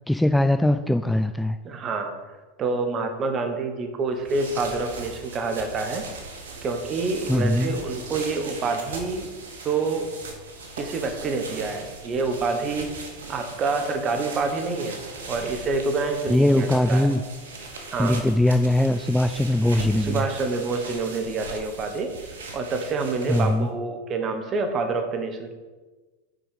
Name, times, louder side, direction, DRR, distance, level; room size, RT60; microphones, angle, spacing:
voice 1, 0.1-1.6 7.3-7.8 16.3-17.2 18.0-20.3 23.3-23.7, left 1 dB, 5° left, 9 dB, 0.3 m, -21 dB
voice 2, 1.6-2.1 2.6-6.1 6.6-9.3 9.6-10.1 10.8-13.0 13.3-17.1 17.9-18.2 20.0-22.1 22.5-25.5, right 3 dB, 35° right, 6 dB, 1.1 m, -27 dB
sound 1, 4.1-23.7, right 3 dB, 80° right, 1.2 m, -39 dB
6.2 x 5.0 x 4.9 m, 1.3 s
hypercardioid pair, 100°, 0 cm